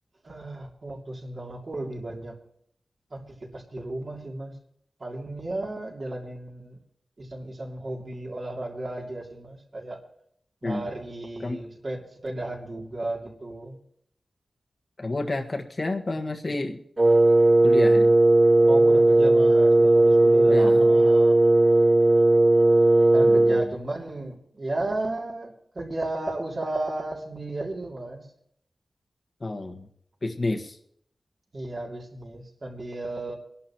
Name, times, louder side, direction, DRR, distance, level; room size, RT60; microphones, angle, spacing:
voice 1, 0.2-2.3 3.1-4.6 5.0-6.8 7.2-10.0 10.6-13.8 18.6-21.4 23.1-28.3 31.5-33.3, right 2 dB, 45° right, -2 dB, 2.8 m, -34 dB
voice 2, 15.0-16.8 17.6-18.1 20.5-20.9 23.2-23.8 29.4-29.9 30.2-30.8, left 2 dB, 40° left, 4 dB, 1.5 m, -30 dB
Wind instrument woodwind instrument, 17.0-23.7, right 2 dB, 25° right, 0.4 m, -17 dB
24.5 x 11.5 x 3.0 m, 0.70 s
wide cardioid pair, 120°, 0 cm